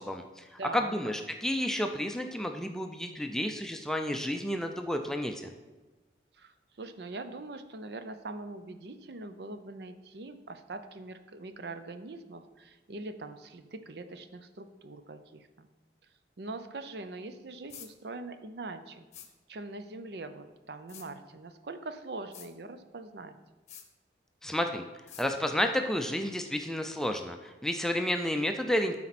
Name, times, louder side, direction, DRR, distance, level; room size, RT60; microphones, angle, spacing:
voice 1, 0.0-0.5 0.7-5.4 24.4-24.8 25.2-29.0, left 1 dB, 5° left, 5 dB, 0.4 m, -31 dB
voice 2, 0.6-1.1 6.3-15.7 16.4-19.0 19.5-23.4, right 2 dB, 65° right, 9 dB, 0.6 m, -42 dB
sound 1, 17.7-17.9 19.1-19.3 20.9-21.1 22.3-22.5 23.7-23.9 25.1-25.3, left 9 dB, 40° left, 0.8 m, -47 dB
12.5 x 4.3 x 4.2 m, 1.2 s
head